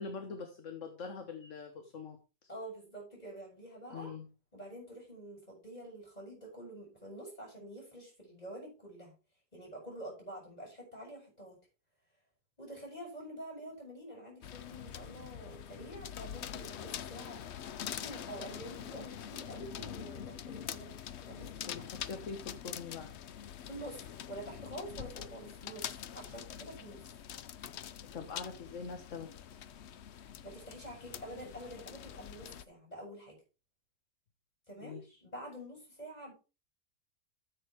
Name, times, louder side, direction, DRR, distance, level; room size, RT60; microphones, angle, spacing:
voice 1, 0.0-2.5 3.9-4.3 21.7-23.1 28.1-29.3 34.8-35.0, left 5 dB, 50° left, 6 dB, 1.5 m, -43 dB
voice 2, 2.5-4.1 4.5-9.1 9.5-11.6 12.6-17.4 18.0-22.0 23.6-27.0 30.1-33.4 34.7-36.3, right 1 dB, 20° left, -1 dB, 6.7 m, -47 dB
sound 1, 14.4-32.7, left 9 dB, 75° left, 0.6 m, -45 dB
13.5 x 7.6 x 3.5 m, 0.32 s
omnidirectional pair, 1.8 m